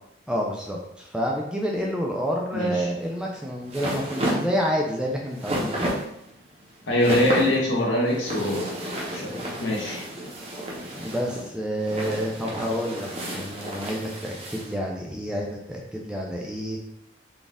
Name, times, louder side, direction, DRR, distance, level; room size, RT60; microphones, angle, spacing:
voice 1, 0.3-5.9 11.0-13.1 13.3-16.8, equal, 5° right, -1 dB, 0.4 m, -29 dB
voice 2, 2.5-2.9 6.9-10.0, left 1 dB, 75° left, -3 dB, 1.2 m, -24 dB
sound 1, 3.0-14.7, right 1 dB, 30° right, 0.7 m, -32 dB
4.1 x 2.4 x 3.4 m, 0.77 s
head